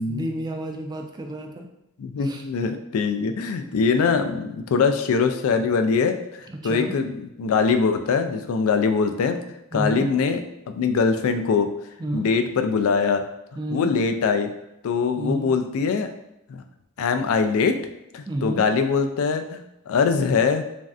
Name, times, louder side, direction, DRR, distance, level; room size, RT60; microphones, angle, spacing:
voice 1, 0.0-1.7 2.2-2.4 6.5-7.0 9.7-10.1 12.0-12.3 13.6-13.9 15.2-15.5 18.3-18.6, right 1 dB, 20° right, 2 dB, 0.3 m, -30 dB
voice 2, 2.0-6.2 6.6-9.4 9.7-10.4 10.7-11.7 12.1-13.2 13.7-14.5 14.8-16.1 16.5-16.6 17.0-17.8 18.1-20.6, left 5 dB, 70° left, 7 dB, 0.3 m, -22 dB
3.1 x 2.6 x 2.4 m, 0.87 s
head